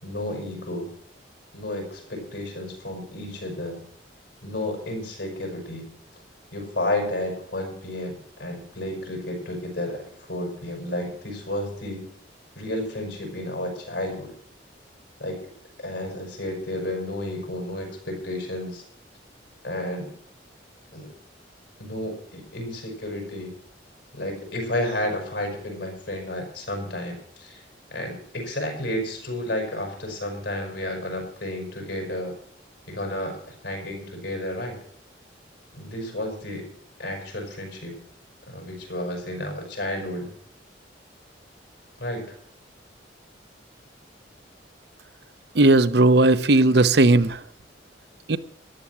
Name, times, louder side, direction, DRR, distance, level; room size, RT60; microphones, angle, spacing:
voice 1, 0.0-0.9 1.5-3.9 4.4-5.9 6.5-12.1 12.6-14.4 15.2-15.4 15.8-18.8 19.6-20.1 20.9-21.1 21.8-23.6 24.1-27.6 27.9-32.4 32.9-34.8 35.7-36.7 37.0-38.0 38.5-40.3 42.0-42.3, left 1 dB, 70° left, 6.0 m, -31 dB
voice 2, 45.6-47.4 48.3-48.4, right 2 dB, 60° right, 0.8 m, -16 dB
14.0 x 11.5 x 6.0 m
head